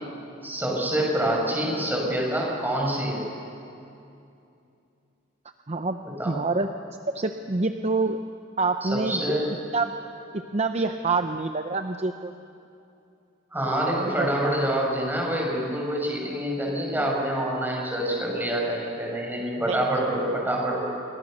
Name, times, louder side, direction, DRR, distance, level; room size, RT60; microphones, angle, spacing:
voice 1, 0.4-3.2 6.0-6.3 8.8-9.4 13.5-20.8, right 1 dB, 10° right, -2 dB, 6.2 m, -26 dB
voice 2, 6.3-6.7 7.1-8.2 8.6-9.2 9.7-10.0 10.5-12.3 13.9-14.3 19.7-19.8, right 3 dB, 35° right, 7 dB, 0.7 m, -26 dB
27.5 x 23.5 x 6.5 m, 2.6 s
head